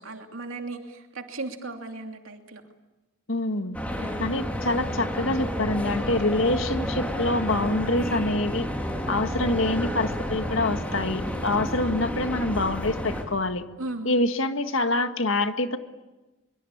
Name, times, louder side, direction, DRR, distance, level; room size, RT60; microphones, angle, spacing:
voice 1, 0.0-2.6 4.0-4.2 13.8-14.2, right 2 dB, 85° right, 4 dB, 2.9 m, -36 dB
voice 2, 3.3-3.8 4.2-8.7 9.1-13.6 14.1-15.8, left 2 dB, 75° left, 8 dB, 1.8 m, -26 dB
sound 1, 3.7-13.2, equal, 5° left, 3.4 m, -30 dB
24.5 x 24.0 x 8.8 m, 1.1 s
head